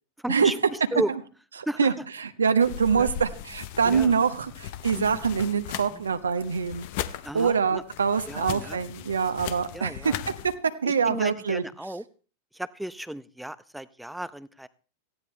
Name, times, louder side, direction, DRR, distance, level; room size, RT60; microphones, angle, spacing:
voice 1, 0.2-1.1 1.7-1.9 2.9-3.1 3.8-4.1 4.9-5.2 5.9-6.0 7.2-7.8 8.3-8.8 9.7-10.2 10.8-12.0 12.5-14.7, right 1 dB, 5° right, 16 dB, 0.7 m, -34 dB
voice 2, 1.6-1.9 2.2-6.9 7.3-10.1 10.8-11.6, right 6 dB, 70° right, 9 dB, 1.1 m, -24 dB
sound 1, 2.6-10.6, left 11 dB, 50° left, 0.9 m, -38 dB
17.5 x 15.0 x 3.3 m, 0.37 s
figure-of-eight pair, 90°, 0 cm